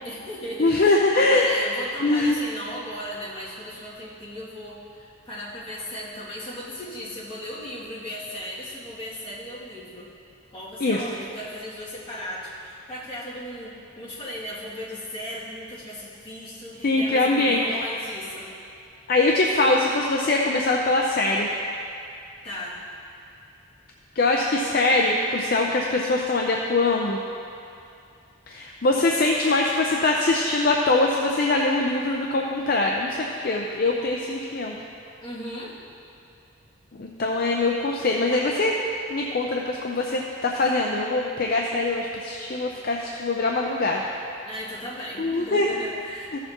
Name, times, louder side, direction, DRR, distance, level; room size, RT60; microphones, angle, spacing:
voice 1, 0.0-10.1 10.5-18.5 22.4-22.8 35.2-35.7 44.4-46.4, equal, 25° left, -10 dB, 2.3 m, -36 dB
voice 2, 0.6-1.5 2.0-2.4 10.8-11.0 16.8-17.8 19.1-21.6 24.2-27.2 28.5-34.7 36.9-38.8 39.1-44.0 45.2-45.7, left 2 dB, 45° left, 0 dB, 0.5 m, -22 dB
15.0 x 6.7 x 2.9 m, 2.6 s
head